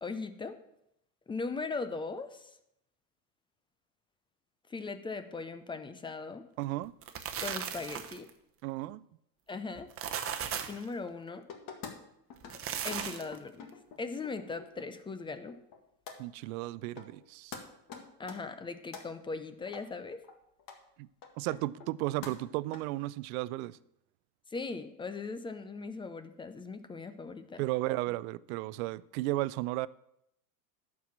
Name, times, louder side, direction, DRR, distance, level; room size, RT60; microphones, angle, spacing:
voice 1, 0.0-0.6 1.3-2.5 4.7-6.4 7.4-8.3 9.5-9.9 10.7-11.4 12.8-13.7 14.0-15.6 18.2-20.2 24.5-27.6, left 4 dB, 10° left, 0.4 m, -39 dB
voice 2, 6.6-6.9 8.6-9.0 16.2-17.6 21.0-21.1 21.4-23.8 27.6-29.9, right 18 dB, 60° right, 0.5 m, -34 dB
sound 1, 6.8-8.3 9.7-10.8 12.4-13.4, right 8 dB, 25° right, 1.0 m, -37 dB
sound 2, 11.5-11.9 12.3-12.6 12.8-14.8 15.2-15.8 16.1-16.2 16.6-16.7 17.0-17.3 17.5-17.6 17.9-19.0 19.7-19.8 20.2-20.3 20.6-20.8 21.2-22.0 22.2-22.8, left 6 dB, 40° left, 1.8 m, -46 dB
11.5 x 4.8 x 7.2 m
hypercardioid pair, 110°, 49 cm